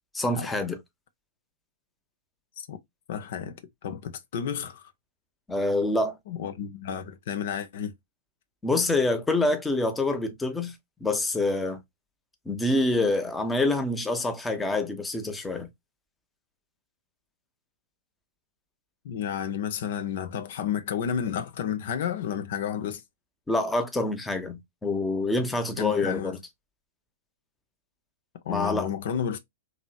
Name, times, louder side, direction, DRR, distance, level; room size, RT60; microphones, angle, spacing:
voice 1, 0.1-0.8 5.5-6.2 8.6-10.7 11.0-11.8 12.5-15.7 23.5-26.4 28.5-28.9, left 2 dB, 10° left, 0.7 m, -26 dB
voice 2, 3.1-4.9 6.3-7.9 13.0-13.1 19.0-23.0 25.8-26.3 28.4-29.4, left 8 dB, 60° left, 0.6 m, -31 dB
3.0 x 2.8 x 2.2 m
hypercardioid pair, 110°, 0 cm